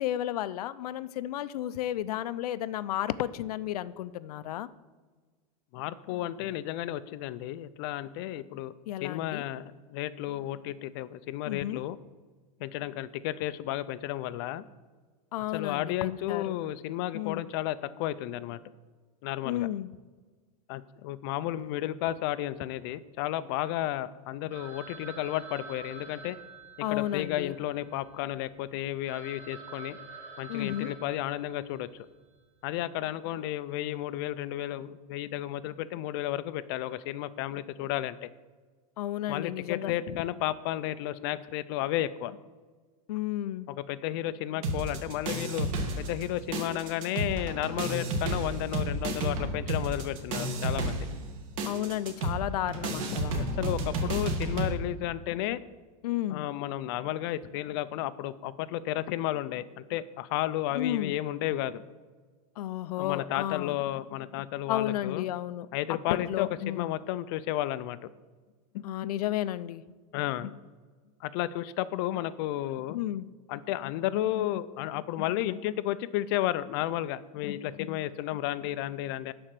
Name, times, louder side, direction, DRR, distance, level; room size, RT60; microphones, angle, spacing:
voice 1, 0.0-4.7 8.9-9.4 11.5-11.8 15.3-16.6 17.1-17.4 19.4-19.9 26.8-27.5 30.5-30.9 39.0-39.9 43.1-43.7 51.6-53.4 56.0-56.4 60.7-61.1 62.6-63.8 64.7-65.7 66.1-66.9 68.8-69.8 72.9-73.3, left 13 dB, 90° left, 15 dB, 0.5 m, -32 dB
voice 2, 5.7-8.7 9.0-12.0 12.6-14.6 15.5-18.6 19.2-19.7 20.7-26.4 26.9-30.0 30.4-32.1 32.6-38.3 39.3-42.4 43.7-45.7 46.0-51.0 53.3-55.6 56.3-61.8 63.0-65.3 65.7-68.1 68.7-68.9 70.1-70.5 71.2-73.0 73.5-79.3, left 14 dB, 40° left, 15 dB, 0.4 m, -33 dB
Telephone, 24.5-28.3 28.8-28.9 29.1-31.9, right 4 dB, 10° right, 1.7 m, -47 dB
sound 1, 44.6-46.3 46.5-54.7, right 1 dB, 60° right, 1.7 m, -31 dB
11.5 x 4.3 x 7.5 m, 1.4 s
supercardioid pair, 170°, 19 cm